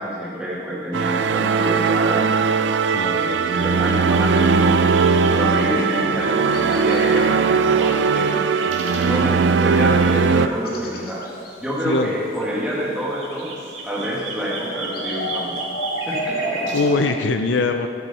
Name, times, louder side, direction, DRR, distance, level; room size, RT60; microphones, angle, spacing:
voice 1, 0.0-2.3 3.1-8.4 8.9-11.3 11.6-13.5 13.8-15.6 16.1-16.6, equal, 5° right, -7 dB, 2.0 m, -27 dB
sound 1, 0.9-10.5, right 5 dB, 65° right, 0.3 m, -19 dB
voice 2, 2.9-3.3 11.8-12.1 16.7-17.9, left 3 dB, 70° left, 7 dB, 0.5 m, -21 dB
sound 2, 3.0-4.7 5.1-6.1 6.5-7.1 7.4-8.2 8.5-9.2 9.5-10.2 10.5-13.4 13.9-17.1, equal, 50° left, 1.2 m, -33 dB
sound 3, 3.0-6.3 6.7-6.8 7.3-10.4 10.6-11.0 11.5-11.8 12.4-12.5 12.9-16.9, right 3 dB, 85° right, 1.8 m, -35 dB
12.0 x 8.0 x 4.3 m, 2.5 s
head